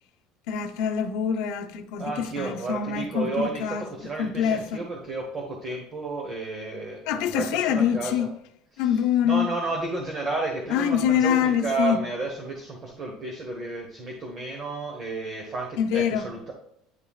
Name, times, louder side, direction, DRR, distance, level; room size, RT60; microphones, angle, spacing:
voice 1, 0.5-3.8 4.2-4.8 7.1-8.3 8.8-9.5 10.7-12.0 15.8-16.3, left 8 dB, 60° left, 0.7 m, -25 dB
voice 2, 2.0-8.3 8.7-9.0 9.2-16.5, right 3 dB, 25° right, 1.1 m, -32 dB
9.7 x 5.4 x 2.4 m
cardioid pair, 175°, 0 cm